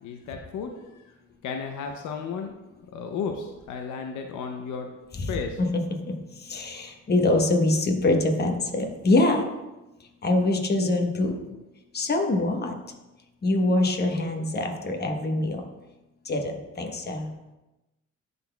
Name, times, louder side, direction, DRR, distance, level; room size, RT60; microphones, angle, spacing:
voice 1, 0.0-1.0 1.4-2.6 2.8-4.9 5.3-5.6, left 5 dB, 75° left, 4 dB, 0.6 m, -33 dB
voice 2, 6.5-9.4 10.2-11.4 11.9-12.7 13.4-15.6 16.3-17.3, left 2 dB, 35° left, 3 dB, 1.1 m, -24 dB
12.0 x 4.0 x 2.3 m, 1.0 s
cardioid pair, 90°, 30 cm